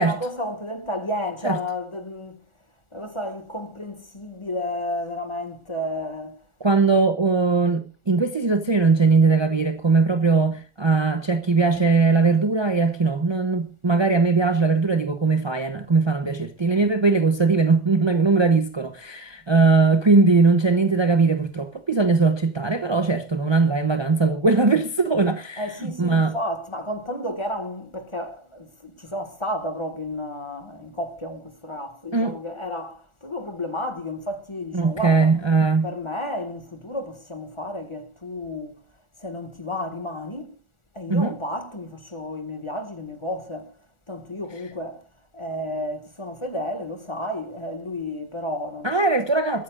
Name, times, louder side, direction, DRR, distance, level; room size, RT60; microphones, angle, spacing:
voice 1, 0.0-2.4 2.9-6.5 25.6-35.3 35.8-38.8 39.2-40.6 40.9-43.7 44.1-45.0 45.3-48.9, left 1 dB, 25° left, 1.9 m, -32 dB
voice 2, 6.6-25.6 26.0-26.3 32.1-32.4 34.7-35.9 41.1-41.4 48.8-49.6, right 3 dB, 25° right, 0.9 m, -20 dB
22.5 x 14.0 x 2.5 m
omnidirectional pair, 1.3 m